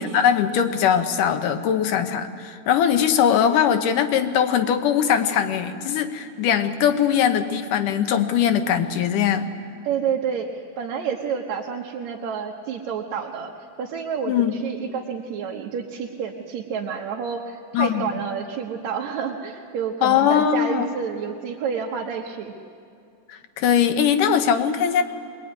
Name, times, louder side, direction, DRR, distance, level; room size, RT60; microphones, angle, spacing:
voice 1, 0.0-9.5 14.3-14.5 17.7-18.1 20.0-20.9 23.3-25.0, left 8 dB, 85° left, 8 dB, 2.6 m, -21 dB
voice 2, 9.8-13.5 13.8-22.6, right 7 dB, 65° right, -1 dB, 2.3 m, -29 dB
22.0 x 22.0 x 9.5 m, 2.5 s
omnidirectional pair, 3.6 m